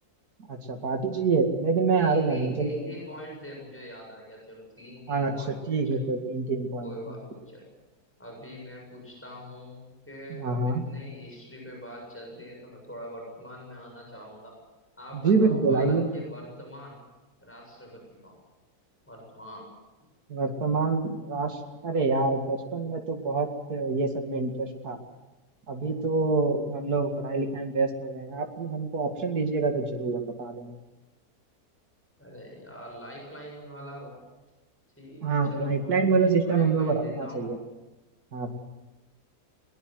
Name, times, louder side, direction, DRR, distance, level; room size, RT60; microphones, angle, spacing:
voice 1, 0.5-2.9 5.1-6.9 10.3-10.8 15.1-16.1 20.3-21.6 21.8-25.0 25.7-30.7 35.2-37.6 38.3-38.5, right 4 dB, 75° right, 3 dB, 2.8 m, -26 dB
voice 2, 2.0-5.9 6.8-7.7 8.2-14.6 15.0-17.1 17.4-18.4 19.1-19.7 32.2-34.2 35.0-37.5, equal, 10° left, 0 dB, 7.5 m, -43 dB
21.5 x 21.0 x 7.9 m, 1.1 s
omnidirectional pair, 1.6 m